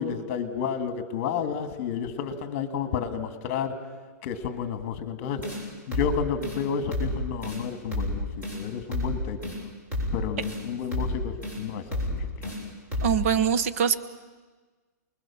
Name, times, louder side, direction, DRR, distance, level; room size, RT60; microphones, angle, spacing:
voice 1, 0.0-3.7 4.2-9.5 10.1-12.5, left 7 dB, 35° left, 9 dB, 2.2 m, -31 dB
sound 1, 5.4-5.6 5.9-6.1 6.4-6.6 6.9-7.1 7.4-7.6 7.9-8.1 8.4-8.6 8.9-9.1 9.4-9.6 9.9-10.1 10.4-10.6 10.9-11.1 11.4-11.6 11.9-12.1 12.4-12.6 12.9-13.1, left 1 dB, 15° right, 7.7 m, -30 dB
voice 2, 13.0-14.0, right 7 dB, 50° right, 11 dB, 1.1 m, -23 dB
29.0 x 21.5 x 7.2 m, 1.4 s
hypercardioid pair, 165°, 9 cm